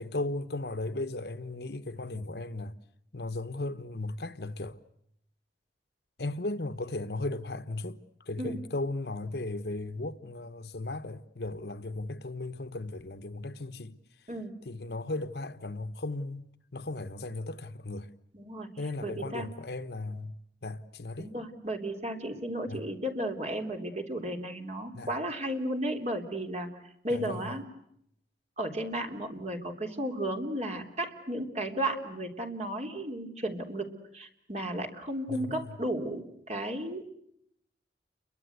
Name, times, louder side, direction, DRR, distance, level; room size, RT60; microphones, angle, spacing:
voice 1, 0.0-2.8 3.1-4.8 6.2-8.0 8.3-14.0 14.6-16.5 16.7-18.1 18.8-21.3 22.7-22.9 24.9-25.1 27.1-27.5 35.3-35.7, left 2 dB, 65° left, 1.2 m, -36 dB
voice 2, 18.3-18.7 19.0-19.5 21.2-26.7 27.0-27.7 28.6-37.1, right 1 dB, 40° right, 3.4 m, -34 dB
29.5 x 23.5 x 8.1 m
head